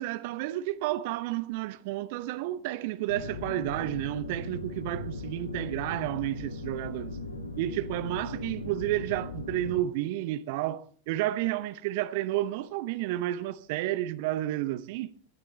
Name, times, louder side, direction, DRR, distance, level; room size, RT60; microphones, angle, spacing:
voice 1, 0.0-7.2 7.6-15.1, right 14 dB, 50° right, 0.8 m, -31 dB
sound 1, 3.1-9.8, left 2 dB, 80° left, 1.7 m, -38 dB
23.0 x 13.0 x 3.2 m
figure-of-eight pair, 90°, 0 cm